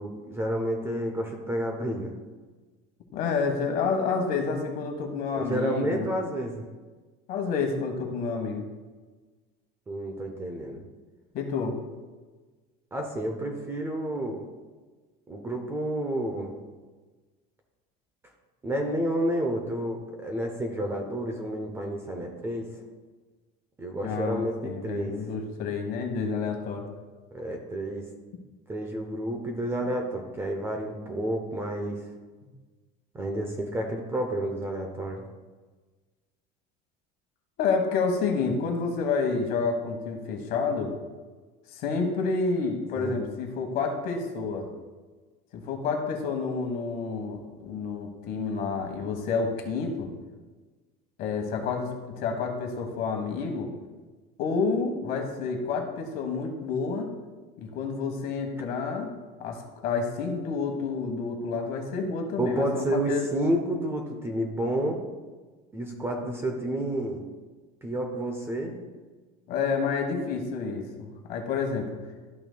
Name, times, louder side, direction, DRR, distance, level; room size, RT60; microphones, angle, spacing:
voice 1, 0.0-2.1 5.3-6.6 9.9-10.8 12.9-14.5 15.3-16.5 18.6-22.7 23.8-25.2 27.3-28.1 28.7-32.0 33.1-35.3 43.0-43.2 62.4-65.0 65.7-67.3 67.8-68.8, right 1 dB, 10° right, 2 dB, 0.6 m, -30 dB
voice 2, 3.1-6.1 7.3-8.6 11.3-11.8 24.0-26.9 37.6-40.9 41.7-44.7 45.5-50.1 51.2-53.7 54.4-57.1 57.6-59.1 59.4-63.3 69.5-71.9, left 4 dB, 45° left, 4 dB, 1.2 m, -29 dB
12.5 x 5.8 x 2.2 m, 1.3 s
cardioid pair, 175°, 21 cm